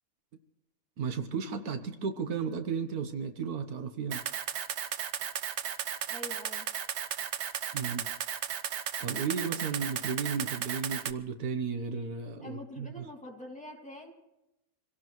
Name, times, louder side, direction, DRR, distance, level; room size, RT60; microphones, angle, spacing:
voice 1, 1.0-4.2 7.7-8.1 9.0-13.1, right 5 dB, 85° right, 8 dB, 1.6 m, -34 dB
Camera, 4.1-11.1, right 9 dB, 60° right, 0.9 m, -35 dB
voice 2, 6.1-6.7 12.4-14.1, left 1 dB, 5° left, -1 dB, 2.6 m, -45 dB
27.0 x 17.0 x 3.1 m, 0.93 s
omnidirectional pair, 1.6 m